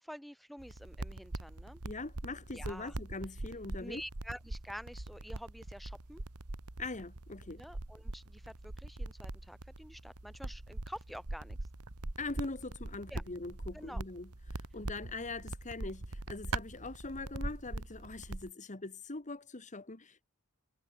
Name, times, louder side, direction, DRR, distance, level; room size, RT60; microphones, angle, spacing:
voice 1, 0.0-1.8 2.5-3.0 3.8-6.2 7.6-11.6 13.1-13.2 13.7-14.0, equal, ahead, 1.7 m, -48 dB
sound 1, 0.6-18.5, right 2 dB, 90° right, 1.9 m, -42 dB
voice 2, 1.8-4.0 6.8-7.6 12.2-20.2, left 3 dB, 35° left, 1.6 m, -42 dB
head